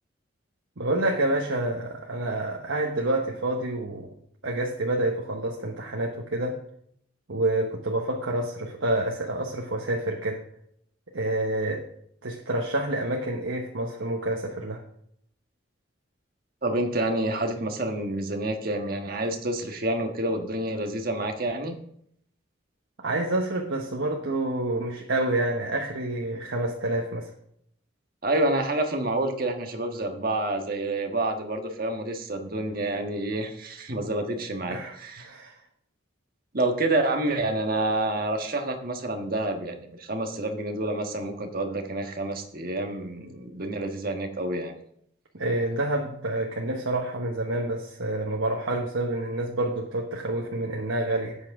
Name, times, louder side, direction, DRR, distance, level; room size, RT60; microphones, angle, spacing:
voice 1, 0.8-4.1 4.4-6.6 7.3-10.4 11.1-11.8 12.2-14.8 23.0-27.3 34.7-35.6 45.3-51.4, right 1 dB, 90° right, 0 dB, 1.2 m, -28 dB
voice 2, 16.6-21.8 28.2-35.3 36.5-44.7, right 2 dB, 50° right, 3 dB, 1.5 m, -28 dB
13.0 x 8.4 x 3.7 m, 0.70 s
head